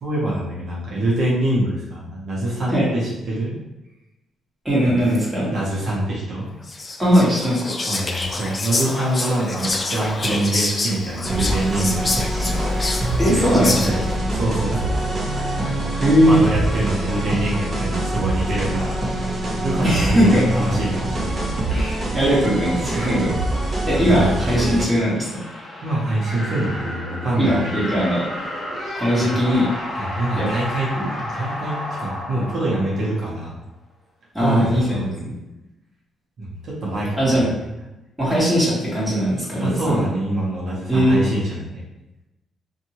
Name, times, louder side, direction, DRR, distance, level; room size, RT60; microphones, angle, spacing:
voice 1, 0.0-3.6 4.8-4.9 5.5-6.5 7.9-21.8 22.8-23.2 23.7-24.4 25.8-27.8 29.2-29.3 30.0-30.9 31.2-33.6 34.4-35.2 36.4-37.5 39.6-41.8, right 1 dB, 65° right, -6 dB, 1.0 m, -25 dB
voice 2, 4.6-5.5 7.0-7.7 13.2-14.0 16.0-16.4 19.8-20.4 21.7-23.3 23.9-25.4 27.4-28.3 28.9-29.7 30.4-30.5 31.0-31.1 34.3-35.4 37.2-37.5 38.2-40.0 40.9-41.2, equal, 5° right, -7 dB, 1.5 m, -19 dB
Whispering, 6.6-14.2, left 2 dB, 30° left, 0.4 m, -27 dB
sound 1, 11.2-24.9, right 1 dB, 35° right, 0.8 m, -24 dB
sound 2, 24.6-33.5, left 1 dB, 10° left, 1.2 m, -31 dB
2.7 x 2.6 x 2.9 m, 0.96 s
cardioid pair, 90°, 0 cm